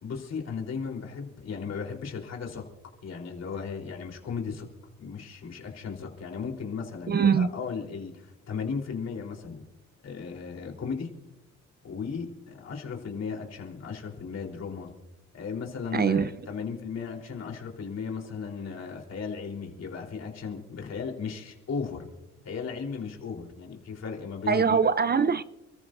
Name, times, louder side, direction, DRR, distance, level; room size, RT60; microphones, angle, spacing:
voice 1, 0.0-2.6 3.0-4.7 5.0-9.6 10.0-11.1 11.8-14.9 15.3-22.1 22.4-24.8, left 5 dB, 60° left, 3.8 m, -36 dB
voice 2, 7.1-7.5 15.9-16.3 24.5-25.4, right 6 dB, 35° right, 0.6 m, -22 dB
30.0 x 14.0 x 2.6 m
cardioid pair, 90°, 30 cm